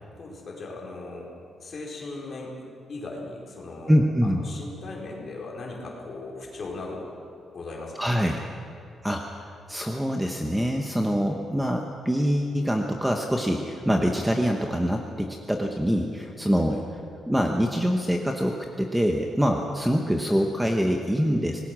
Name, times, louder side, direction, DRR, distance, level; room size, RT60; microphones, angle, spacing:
voice 1, 0.1-1.3 1.6-2.6 2.9-3.9 4.2-7.2 7.5-7.9 16.7-16.8, left 3 dB, 35° left, -3 dB, 4.7 m, -38 dB
voice 2, 3.9-4.4 8.0-8.4 9.0-17.0 17.3-21.6, equal, 5° right, 2 dB, 1.1 m, -25 dB
26.5 x 19.5 x 6.2 m, 2.5 s
cardioid pair, 180°, 0 cm